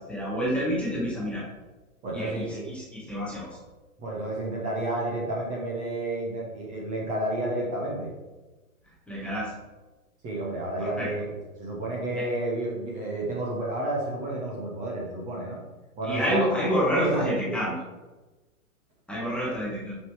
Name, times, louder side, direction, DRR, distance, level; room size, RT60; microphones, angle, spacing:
voice 1, 0.1-1.4 2.1-3.6 9.1-9.5 10.8-11.1 12.2-12.3 16.0-17.8 19.1-20.0, equal, 5° left, -7 dB, 1.3 m, -28 dB
voice 2, 2.0-2.7 4.0-8.1 10.2-11.3 11.6-15.6 16.0-16.4 16.9-17.5, right 2 dB, 15° right, -4 dB, 1.2 m, -31 dB
6.3 x 5.7 x 4.8 m, 1.2 s
hypercardioid pair, 150°, 43 cm